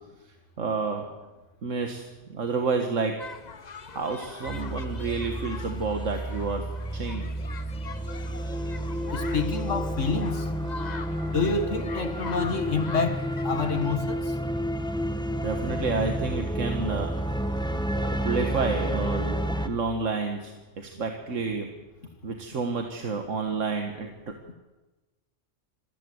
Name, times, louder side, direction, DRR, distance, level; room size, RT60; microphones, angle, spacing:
voice 1, 0.6-1.1 1.6-3.2 3.9-6.7 6.9-7.3 15.4-17.1 18.2-19.4 19.7-21.7 22.2-24.1, right 4 dB, 80° right, 1.9 m, -29 dB
sound 1, 3.2-14.0, left 5 dB, 40° left, 0.9 m, -43 dB
sound 2, 4.5-19.7, equal, 5° left, 1.3 m, -30 dB
voice 2, 9.1-10.5 11.3-14.3, left 4 dB, 75° left, 2.1 m, -28 dB
27.0 x 15.0 x 7.9 m
omnidirectional pair, 1.3 m